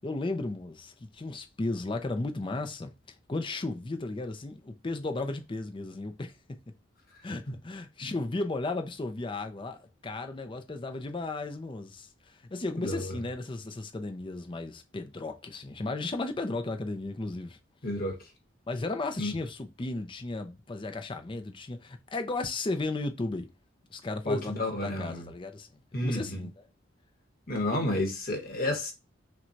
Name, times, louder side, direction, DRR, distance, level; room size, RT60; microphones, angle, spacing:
voice 1, 0.0-2.9 3.3-6.3 7.2-17.6 18.7-23.5 23.9-26.6, left 2 dB, 25° left, 0.5 m, -35 dB
voice 2, 12.8-13.2 17.8-18.2 19.2-19.3 24.2-25.2 25.9-26.5 27.5-28.9, left 1 dB, 50° left, 1.2 m, -31 dB
5.9 x 2.2 x 2.6 m
head